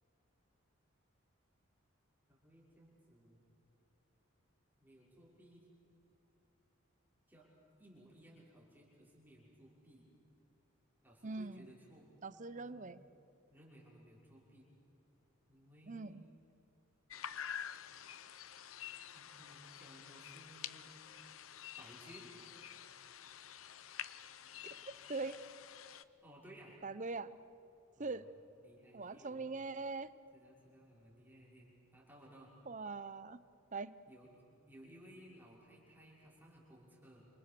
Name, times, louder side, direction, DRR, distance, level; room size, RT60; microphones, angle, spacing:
voice 1, 2.3-3.4 4.8-5.7 7.3-7.5 7.8-10.1 11.0-12.0 12.5-12.9 13.5-14.6 15.5-16.2 19.1-21.0 21.8-22.3 26.2-26.8 28.0-28.2 28.6-29.4 30.3-32.5 34.1-37.3, equal, 10° right, -5 dB, 5.7 m, -59 dB
voice 2, 11.2-11.7 12.2-13.0 15.9-16.2 24.6-24.7 25.1-25.4 26.8-27.3 28.0-28.2 28.9-30.1 32.7-33.4 33.7-34.0, right 3 dB, 35° right, 14 dB, 0.8 m, -42 dB
sound 1, 17.1-26.0, left 9 dB, 80° left, 0.8 m, -49 dB
28.5 x 27.0 x 6.9 m, 2.9 s
head